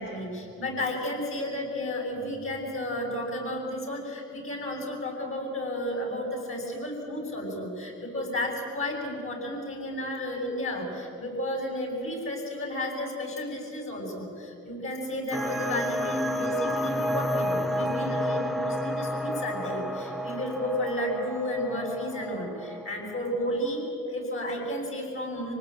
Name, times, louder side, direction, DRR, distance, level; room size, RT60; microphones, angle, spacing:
voice 1, 0.0-25.5, left 1 dB, 45° left, 2 dB, 8.0 m, -32 dB
sound 1, 15.3-23.6, equal, ahead, 1.1 m, -31 dB
26.0 x 19.0 x 9.1 m, 2.6 s
cardioid pair, 90°, 30 cm